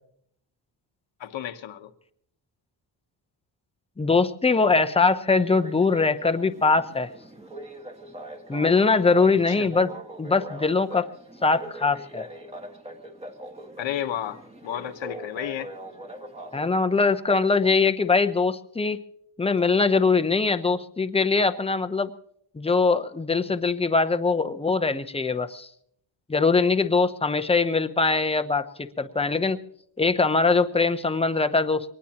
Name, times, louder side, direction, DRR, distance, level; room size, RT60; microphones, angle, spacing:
voice 1, 1.2-1.9 9.5-9.7 13.8-15.7, left 10 dB, 75° left, 8 dB, 1.3 m, -32 dB
voice 2, 4.0-7.1 8.5-9.9 10.2-11.1 11.4-12.2 16.5-19.0 19.4-22.1 22.5-25.7 26.3-29.6 30.0-31.9, left 4 dB, 15° left, 9 dB, 0.8 m, -22 dB
sound 1, 5.4-16.7, right 1 dB, 15° right, 1.6 m, -42 dB
23.0 x 19.0 x 2.9 m, 0.69 s
cardioid pair, 125°, 46 cm